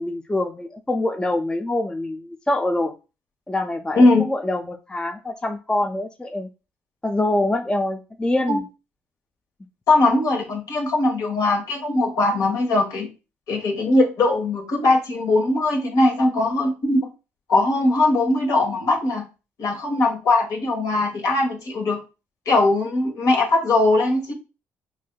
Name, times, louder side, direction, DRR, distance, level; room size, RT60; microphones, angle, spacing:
voice 1, 0.0-2.9 3.5-6.5 7.0-8.6, left 1 dB, 15° left, 5 dB, 0.6 m, -25 dB
voice 2, 9.9-13.1 13.5-17.0 17.5-19.2 19.6-22.0 22.4-24.3, left 2 dB, 60° left, 0 dB, 1.3 m, -20 dB
5.6 x 2.7 x 2.3 m, 0.31 s
hypercardioid pair, 50°, 6 cm